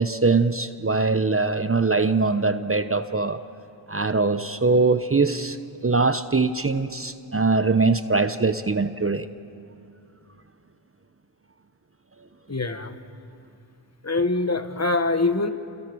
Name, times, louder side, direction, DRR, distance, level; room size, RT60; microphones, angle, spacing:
voice 1, 0.0-3.4 3.9-5.6 5.8-9.3, right 3 dB, 30° right, 11 dB, 0.9 m, -22 dB
voice 2, 12.5-13.0 14.0-15.5, left 3 dB, 35° left, 8 dB, 1.6 m, -24 dB
29.5 x 27.0 x 6.3 m, 2.6 s
cardioid pair, 55°, 47 cm